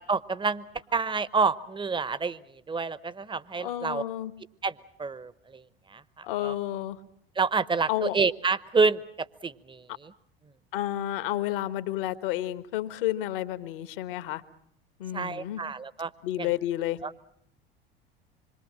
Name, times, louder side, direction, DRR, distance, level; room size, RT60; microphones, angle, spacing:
voice 1, 0.0-4.0 4.6-5.6 5.9-6.5 7.4-10.1 15.1-16.1 16.4-16.5 17.0-17.1, right 4 dB, 15° right, 18 dB, 1.0 m, -28 dB
voice 2, 3.6-4.3 6.2-7.0 7.9-8.2 10.7-14.4 15.0-15.6 16.2-17.0, left 14 dB, 65° left, 13 dB, 1.4 m, -31 dB
26.5 x 22.5 x 7.5 m, 0.69 s
figure-of-eight pair, 65°, 30 cm